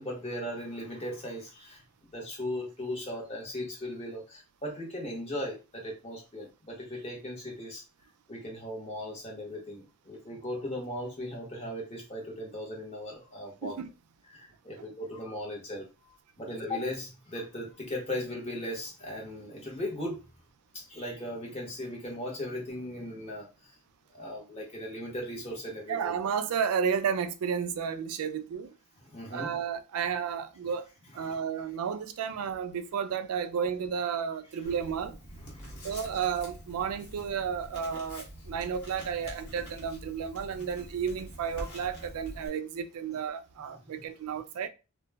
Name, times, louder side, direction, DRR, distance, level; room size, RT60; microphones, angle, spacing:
voice 1, 0.0-1.8 2.1-7.8 8.3-13.8 14.3-20.2 20.7-23.8 24.1-26.2 29.0-29.6 31.2-31.4 34.6-34.7 35.3-36.0 43.9-44.1, left 1 dB, 30° left, 0.8 m, -38 dB
voice 2, 25.9-28.7 29.3-30.9 31.1-35.2 35.8-44.7, right 7 dB, 85° right, 0.3 m, -32 dB
Writing, 34.6-42.5, equal, 75° left, 1.0 m, -45 dB
2.2 x 2.0 x 3.3 m
head